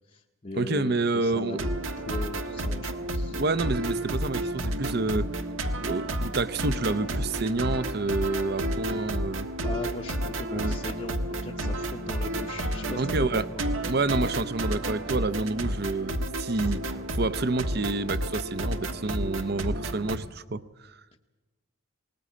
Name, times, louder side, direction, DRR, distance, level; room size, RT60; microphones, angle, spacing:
voice 1, 0.0-1.6 2.0-3.4 9.6-13.6 21.1-21.2, left 2 dB, 30° left, 1 dB, 0.8 m, -39 dB
voice 2, 0.5-1.7 3.3-5.3 5.8-9.5 10.5-10.8 13.0-13.5 13.8-21.0, right 3 dB, 50° right, 14 dB, 0.7 m, -29 dB
sound 1, 1.5-20.2, right 1 dB, 70° right, 1.5 m, -31 dB
20.0 x 19.0 x 8.5 m, 1.2 s
head